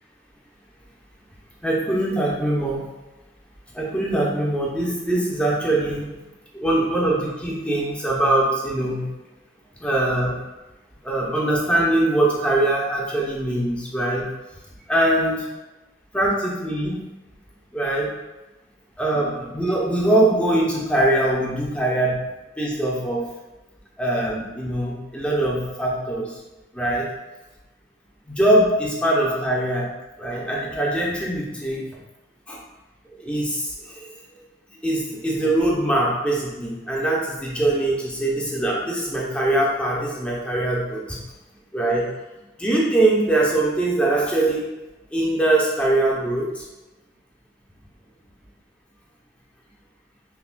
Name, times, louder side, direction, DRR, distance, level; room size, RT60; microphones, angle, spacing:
voice 1, 1.6-2.9 3.7-6.1 6.5-9.1 9.8-10.4 11.0-14.3 14.9-15.4 16.1-16.9 17.7-18.1 19.0-22.2 22.6-23.2 24.0-26.3 26.7-27.1 28.3-29.9 30.2-31.8 32.5-32.6 33.2-34.2 34.8-41.2 41.7-42.1 42.6-44.7 45.1-46.7, right 1 dB, 5° left, -4 dB, 0.6 m, -22 dB
5.7 x 2.4 x 2.2 m, 1.1 s
head